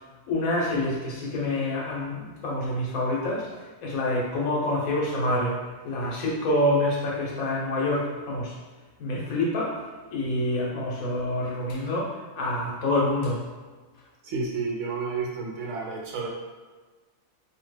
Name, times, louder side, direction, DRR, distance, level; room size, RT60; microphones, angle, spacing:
voice 1, 0.3-8.6 9.0-9.8 10.1-13.4, left 1 dB, 85° left, -4 dB, 1.3 m, -27 dB
voice 2, 14.2-16.3, right 4 dB, 70° right, -2 dB, 0.8 m, -31 dB
2.8 x 2.2 x 3.2 m, 1.4 s
omnidirectional pair, 1.5 m